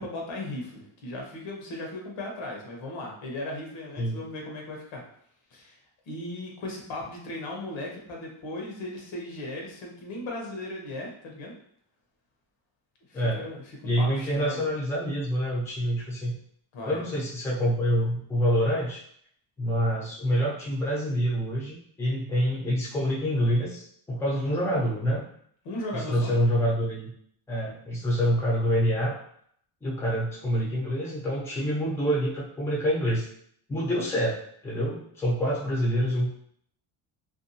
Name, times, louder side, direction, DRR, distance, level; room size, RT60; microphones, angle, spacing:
voice 1, 0.0-5.0 5.5-5.8 6.1-11.5 13.1-13.6 14.0-14.6 16.7-17.0 25.6-26.3, left 1 dB, 75° left, -1 dB, 1.0 m, -37 dB
voice 2, 13.1-13.5 13.8-16.3 16.8-19.0 19.6-25.2 25.9-27.1 27.5-29.2 29.8-33.3 33.7-34.4 34.6-36.3, equal, 5° left, -5 dB, 0.5 m, -26 dB
2.6 x 2.3 x 2.7 m, 0.64 s
cardioid pair, 145°, 47 cm